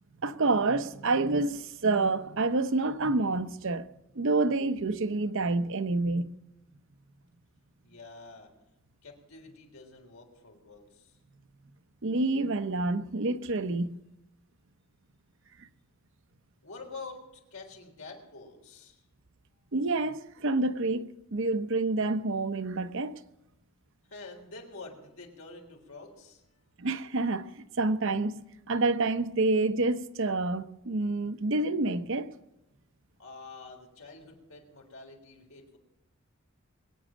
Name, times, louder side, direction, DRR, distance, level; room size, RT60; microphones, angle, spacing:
voice 1, 0.2-3.9 4.1-6.4 12.0-14.0 19.7-23.2 26.8-32.3, right 3 dB, 65° right, 0.8 m, -28 dB
voice 2, 7.8-8.5 9.0-11.2 16.6-19.0 24.1-26.6 33.2-35.8, left 3 dB, 85° left, 3.7 m, -47 dB
22.0 x 9.0 x 6.3 m
head